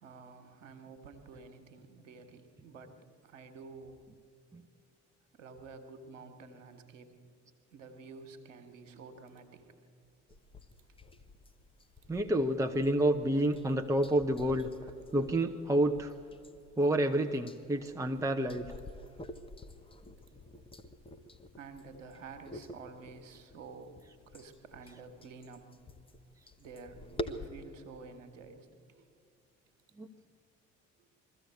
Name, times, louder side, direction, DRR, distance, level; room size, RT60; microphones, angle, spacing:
voice 1, 0.0-4.1 5.3-7.1 7.7-9.8 12.1-12.2 12.7-13.0 17.7-18.0 19.1-19.2 20.5-20.7 21.5-24.0 24.3-25.6 26.6-29.0, right 4 dB, 75° right, 8 dB, 1.6 m, -50 dB
sound 1, 10.3-27.5, left 1 dB, 15° left, 1.2 m, -48 dB
voice 2, 12.1-14.7 15.1-16.1 16.8-18.7 30.0-30.1, right 1 dB, 10° right, 4 dB, 0.9 m, -29 dB
21.5 x 14.5 x 8.4 m, 2.5 s
figure-of-eight pair, 50°, 37 cm